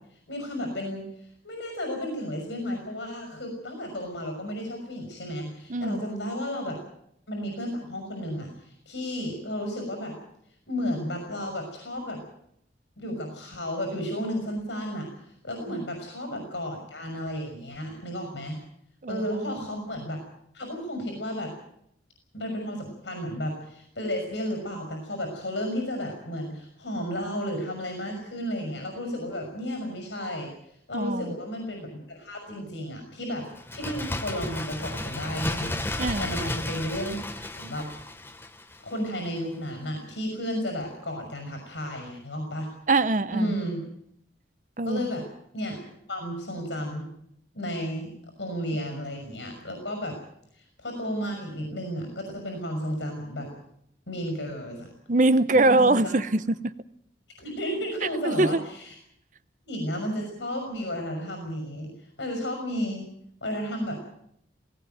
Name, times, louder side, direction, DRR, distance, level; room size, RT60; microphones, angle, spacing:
voice 1, 0.3-1.1 1.4-6.8 7.3-10.2 10.7-12.2 13.0-15.1 15.4-18.6 19.1-20.2 20.5-21.5 22.3-30.5 30.9-33.4 33.7-37.8 38.8-42.7 43.3-43.8 44.8-45.2 45.5-45.8 46.1-47.1 47.5-48.1 48.4-50.2 50.6-53.5 54.1-54.9 55.5-56.2 57.4-58.9 59.6-63.1 63.4-63.9, equal, 80° left, 6.0 m, -33 dB
voice 2, 5.7-6.1 15.7-15.8 19.0-19.8 30.9-31.3 36.0-36.3 42.9-43.5 44.8-45.1 55.1-56.7 58.2-58.6, right 2 dB, 45° right, 0.8 m, -23 dB
Bird, 33.5-39.1 39.4-39.5, left 1 dB, 15° left, 1.0 m, -33 dB
18.5 x 18.0 x 9.3 m
head